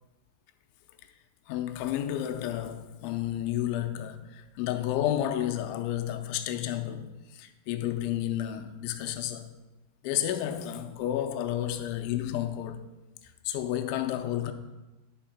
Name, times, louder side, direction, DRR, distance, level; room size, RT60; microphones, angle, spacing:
voice 1, 1.5-9.5 10.0-12.9 13.5-14.5, left 12 dB, 85° left, 2.9 m, -31 dB
10.5 x 4.4 x 5.8 m
omnidirectional pair, 5.3 m